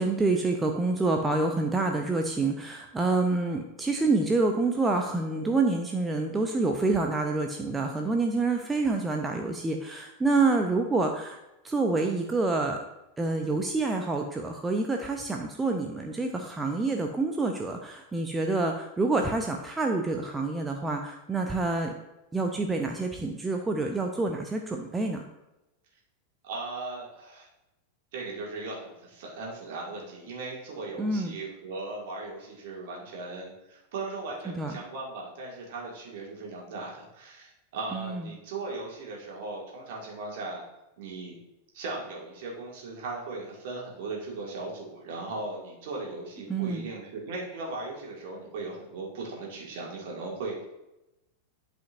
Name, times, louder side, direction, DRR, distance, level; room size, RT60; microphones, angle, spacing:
voice 1, 0.0-11.4 11.6-12.8 13.2-21.9 22.3-25.2 31.0-31.3 34.5-34.8 37.9-38.2 46.5-46.8, right 3 dB, 10° right, 3 dB, 0.6 m, -27 dB
voice 2, 26.4-27.5 28.1-40.6 41.0-41.4 41.7-50.7, right 3 dB, 50° right, -2 dB, 2.1 m, -38 dB
11.0 x 5.1 x 2.5 m, 0.94 s
figure-of-eight pair, 90°, 0 cm